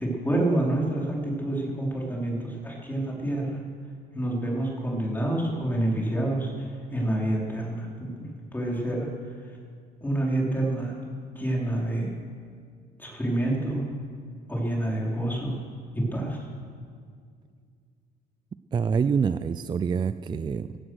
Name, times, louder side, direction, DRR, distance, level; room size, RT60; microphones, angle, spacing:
voice 1, 0.0-3.6 4.1-8.1 8.5-9.6 10.0-11.0 11.3-12.1 13.0-13.8 14.5-15.6 15.9-16.5, right 1 dB, 10° left, -3 dB, 4.2 m, -28 dB
voice 2, 18.7-20.8, right 6 dB, 25° right, 13 dB, 0.4 m, -26 dB
15.5 x 14.0 x 6.4 m, 2.1 s
cardioid pair, 110°, 17 cm